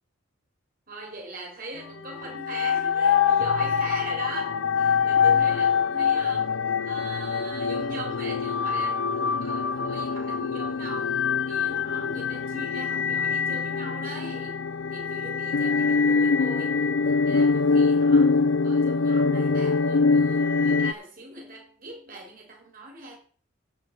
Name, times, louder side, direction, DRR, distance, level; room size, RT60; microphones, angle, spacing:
voice 1, 0.9-23.2, right 2 dB, 45° right, 3.4 m, -41 dB
sound 1, 2.1-20.9, left 5 dB, 65° left, 0.5 m, -24 dB
8.9 x 6.5 x 7.8 m
head